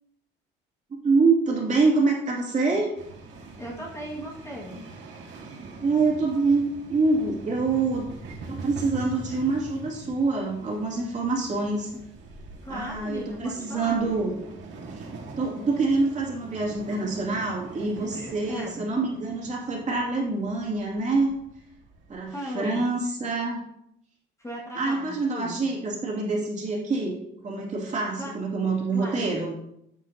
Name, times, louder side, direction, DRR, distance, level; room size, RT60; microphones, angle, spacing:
voice 1, 0.9-2.9 5.5-8.1 8.5-11.9 12.7-14.4 14.9-15.0 15.4-21.4 22.1-23.6 24.7-27.2 27.4-29.5, right 3 dB, 35° right, -3 dB, 2.5 m, -26 dB
sound 1, 3.0-22.2, right 3 dB, 70° right, 1.9 m, -43 dB
voice 2, 3.6-4.8 12.6-14.0 18.0-18.8 22.3-22.9 24.4-25.6 28.2-28.3 28.9-29.3, equal, 15° left, -4 dB, 2.0 m, -37 dB
10.5 x 7.2 x 2.8 m, 0.78 s
cardioid pair, 140°, 20 cm